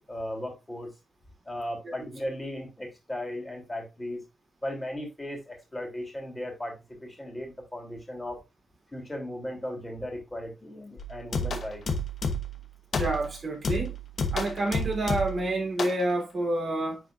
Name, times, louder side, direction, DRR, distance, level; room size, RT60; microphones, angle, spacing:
voice 1, 0.1-0.9 1.5-4.2 4.6-8.4 8.9-11.8, left 1 dB, 15° left, 2.7 m, -36 dB
sound 1, 11.0-12.6 12.9-13.3 13.6-15.5 15.8-16.0, left 2 dB, 60° left, 1.1 m, -30 dB
voice 2, 13.0-13.9 14.3-17.0, right 2 dB, 40° right, 3.1 m, -28 dB
9.7 x 4.2 x 2.4 m
cardioid pair, 100°, 0 cm